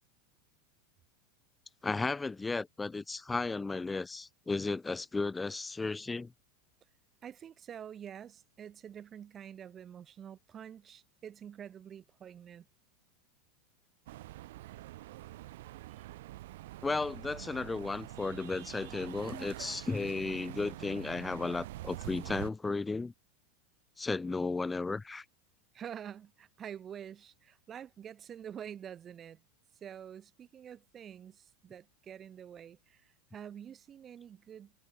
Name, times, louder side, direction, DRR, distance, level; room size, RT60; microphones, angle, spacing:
voice 1, 1.8-6.3 16.8-23.1 24.0-25.2, left 3 dB, 10° left, 0.7 m, -34 dB
voice 2, 7.2-12.7 16.0-16.1 25.7-29.4 29.8-34.7, right 9 dB, 30° right, 0.9 m, -47 dB
sound 1, 14.1-22.5, right 16 dB, 75° right, 2.2 m, -45 dB
supercardioid pair, 120°, 0 cm